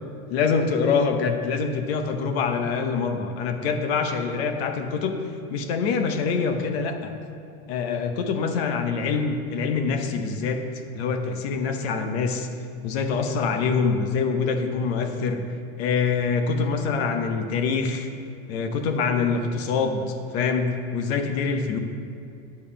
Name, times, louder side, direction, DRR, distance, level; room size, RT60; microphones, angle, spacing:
voice 1, 0.3-5.2 5.5-7.1 7.7-10.6 10.9-12.5 12.8-15.4 15.8-18.1 18.5-20.0 20.3-21.8, left 5 dB, 45° left, 6 dB, 0.9 m, -25 dB
9.4 x 5.3 x 6.9 m, 2.5 s
supercardioid pair, 175°, 42 cm